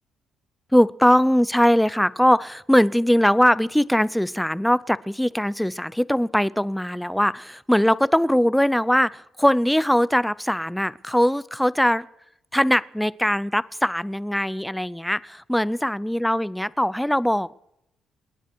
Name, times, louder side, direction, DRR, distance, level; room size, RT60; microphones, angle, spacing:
voice 1, 0.7-12.1 12.5-17.6, equal, 5° left, 20 dB, 0.5 m, -21 dB
26.5 x 10.0 x 4.7 m, 0.83 s
cardioid pair, 90°, 0 cm